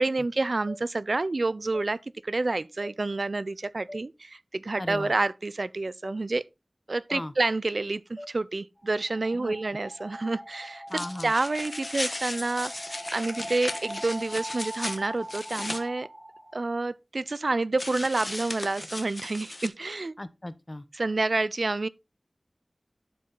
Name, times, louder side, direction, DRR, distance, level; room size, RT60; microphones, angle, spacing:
voice 1, 0.0-6.4 6.9-10.8 11.2-16.1 16.5-20.1 21.0-21.9, right 3 dB, 75° right, 0.4 m, -28 dB
sound 1, 0.7-0.8 1.7-1.9 2.8-3.0 3.9-4.0 5.0-5.1 6.0-6.2 7.1-7.3 8.2-8.3, left 1 dB, 15° left, 1.7 m, -41 dB
voice 2, 4.8-5.1 7.1-7.3 9.3-9.6 10.9-11.3 20.2-20.9, left 1 dB, 30° left, 0.8 m, -37 dB
sound 2, 8.8-16.6, equal, 10° right, 1.8 m, -42 dB
sound 3, 10.9-15.8 17.8-19.7, left 2 dB, 50° left, 1.1 m, -36 dB
11.5 x 4.6 x 3.9 m
wide cardioid pair, 45°, 0 cm